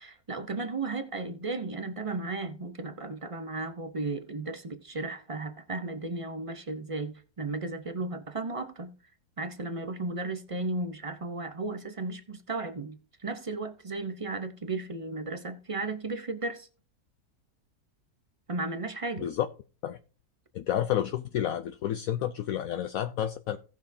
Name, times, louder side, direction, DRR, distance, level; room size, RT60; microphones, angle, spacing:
voice 1, 0.0-8.9 9.4-16.7 18.5-19.3, right 3 dB, 35° right, 0.5 m, -35 dB
voice 2, 20.5-23.6, left 11 dB, 70° left, 0.9 m, -30 dB
17.0 x 6.0 x 2.7 m
omnidirectional pair, 1.7 m